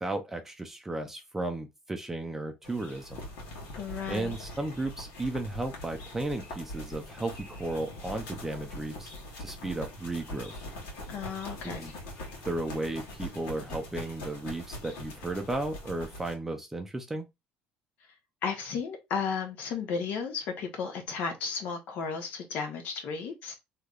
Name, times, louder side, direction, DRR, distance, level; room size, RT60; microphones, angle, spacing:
voice 1, 0.0-3.2 4.1-9.1 9.4-10.5 11.6-11.9 12.4-17.3, right 2 dB, 10° right, 0.5 m, -34 dB
sound 1, 2.6-16.3, left 1 dB, 80° left, 1.4 m, -42 dB
voice 2, 3.8-4.4 11.1-11.9 18.4-23.5, left 6 dB, 60° left, 1.1 m, -34 dB
3.3 x 2.8 x 2.4 m
cardioid pair, 130°, 3 cm